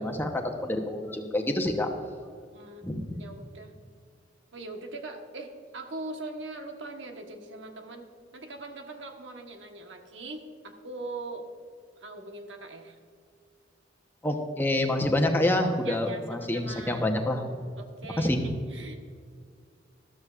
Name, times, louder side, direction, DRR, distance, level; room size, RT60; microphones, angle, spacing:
voice 1, 0.0-1.9 2.8-3.2 14.2-17.5 18.2-18.5, left 1 dB, 10° left, 3 dB, 0.9 m, -27 dB
voice 2, 2.5-3.7 4.5-8.1 8.3-11.4 12.0-13.0 15.8-17.3 17.8-19.0, right 2 dB, 85° right, 4 dB, 1.3 m, -41 dB
13.5 x 12.5 x 2.5 m, 2.1 s
head